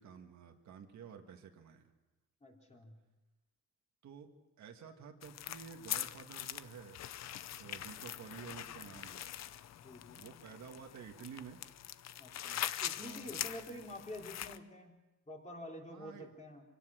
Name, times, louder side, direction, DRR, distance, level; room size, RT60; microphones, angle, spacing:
voice 1, 0.0-1.9 4.0-7.0 7.5-9.3 10.2-11.6 13.0-13.3 13.7-13.8 15.9-16.3, right 7 dB, 70° right, 4 dB, 1.8 m, -51 dB
voice 2, 2.4-3.0 9.8-10.2 12.2-14.9 15.3-16.6, left 1 dB, 25° left, 0 dB, 3.6 m, -48 dB
sound 1, 5.2-14.6, left 11 dB, 60° left, 0.7 m, -43 dB
25.0 x 17.0 x 6.3 m, 1.0 s
cardioid pair, 125°, 29 cm